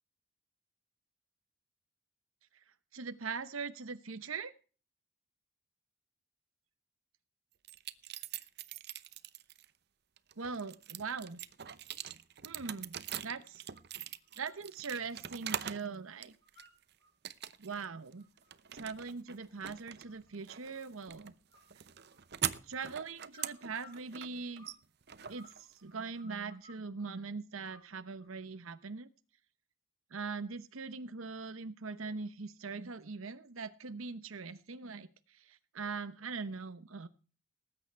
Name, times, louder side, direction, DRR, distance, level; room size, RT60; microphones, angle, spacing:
voice 1, 2.9-4.5 10.4-11.4 12.4-12.9 13.2-13.6 14.4-16.3 17.6-18.2 18.7-21.3 22.6-24.7 25.3-29.1 30.1-37.1, right 4 dB, 90° right, 11 dB, 0.9 m, -41 dB
sound 1, 7.6-9.7 10.2-15.9 16.2-16.8 17.2-17.8 18.1-26.1, right 10 dB, 50° right, 0.8 m, -43 dB
sound 2, 14.2-14.6 15.0-15.9 16.2-17.1 17.5-20.3 20.7-21.2 21.5-22.5 23.3-24.8 25.1-27.2 27.7-28.4, left 2 dB, 20° left, 4.3 m, -61 dB
19.0 x 9.0 x 4.5 m, 0.38 s
head